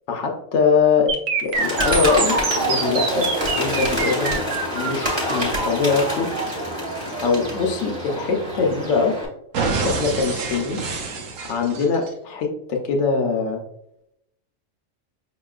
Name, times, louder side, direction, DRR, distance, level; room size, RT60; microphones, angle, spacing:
voice 1, 0.1-1.1 1.4-2.4 2.6-3.3 3.5-4.4 4.7-6.3 7.2-9.2 9.8-10.8 11.5-13.6, left 5 dB, 70° left, 1 dB, 0.9 m, -22 dB
sound 1, 1.1-9.0 9.5-12.1, right 4 dB, 90° right, 1.0 m, -26 dB
Bird, 1.5-9.3, equal, 25° right, 1.1 m, -27 dB
5.3 x 2.9 x 2.3 m, 0.81 s
omnidirectional pair, 1.3 m